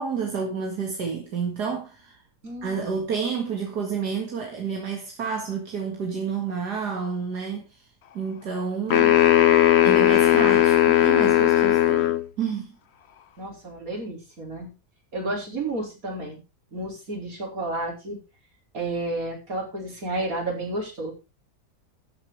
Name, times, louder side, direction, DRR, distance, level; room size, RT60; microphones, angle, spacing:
voice 1, 0.0-2.2 2.6-7.8 8.1-9.2 9.8-12.7, right 6 dB, 75° right, 2.6 m, -30 dB
voice 2, 2.4-3.0 13.4-14.7 15.1-16.4 16.7-18.2 18.7-21.1, right 2 dB, 55° right, 5.4 m, -31 dB
sound 1, 8.9-12.2, left 12 dB, 50° left, 0.9 m, -17 dB
14.0 x 8.3 x 4.9 m
omnidirectional pair, 1.8 m